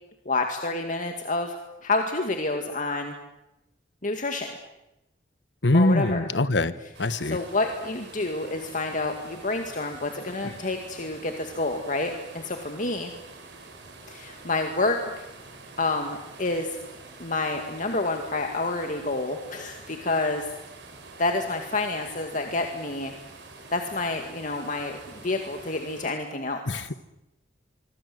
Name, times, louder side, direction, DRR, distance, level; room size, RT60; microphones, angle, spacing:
voice 1, 0.3-1.6 1.8-3.1 4.0-4.5 5.7-6.2 7.2-13.1 14.1-15.0 15.8-16.8 17.2-20.5 21.2-23.1 23.7-26.8, left 2 dB, 45° left, 4 dB, 2.1 m, -28 dB
voice 2, 5.6-6.7 7.0-7.4 26.7-26.9, left 2 dB, 85° left, 14 dB, 1.3 m, -23 dB
sound 1, 6.9-26.1, right 3 dB, 75° right, 6.6 m, -46 dB
24.5 x 24.5 x 7.9 m, 0.93 s
head